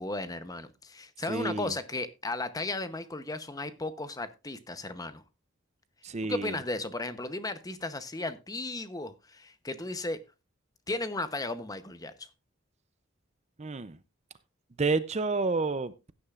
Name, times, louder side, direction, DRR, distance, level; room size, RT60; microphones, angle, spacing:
voice 1, 0.0-5.2 6.2-10.2 10.9-12.1, left 2 dB, 15° left, 0.8 m, -35 dB
voice 2, 1.3-1.7 6.0-6.5 13.6-14.0 14.8-16.1, right 3 dB, 30° right, 0.5 m, -30 dB
16.0 x 9.9 x 2.5 m
head